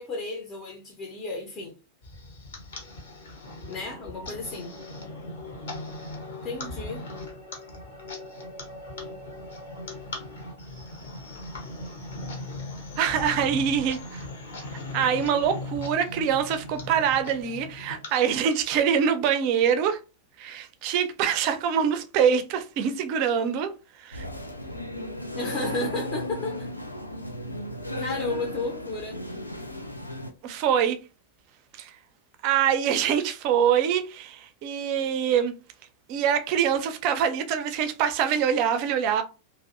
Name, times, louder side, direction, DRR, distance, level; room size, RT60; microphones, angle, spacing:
voice 1, 0.0-1.8 3.7-4.7 6.4-7.0 25.3-26.7 28.0-29.2, left 2 dB, 30° left, 0.6 m, -33 dB
sound 1, 2.0-18.9, left 2 dB, 60° left, 0.8 m, -39 dB
voice 2, 13.0-14.2 14.9-20.0 20.4-23.7 24.0-24.3 30.4-31.0 31.8-31.9 32.4-35.5 36.1-39.2, right 8 dB, 45° right, 0.4 m, -24 dB
sound 2, 24.1-30.3, left 1 dB, 85° left, 0.3 m, -35 dB
2.5 x 2.0 x 2.4 m
figure-of-eight pair, 90°, 0 cm